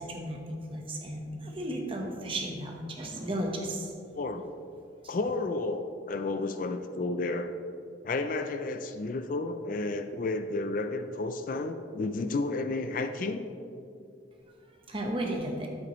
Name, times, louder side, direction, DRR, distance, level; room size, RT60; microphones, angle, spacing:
voice 1, 0.0-3.9 5.0-5.2 14.9-15.7, right 1 dB, 30° right, 0 dB, 1.1 m, -34 dB
voice 2, 4.1-4.5 5.1-7.5 8.0-13.5, left 3 dB, 45° left, 9 dB, 0.4 m, -32 dB
9.5 x 8.3 x 3.1 m, 2.4 s
head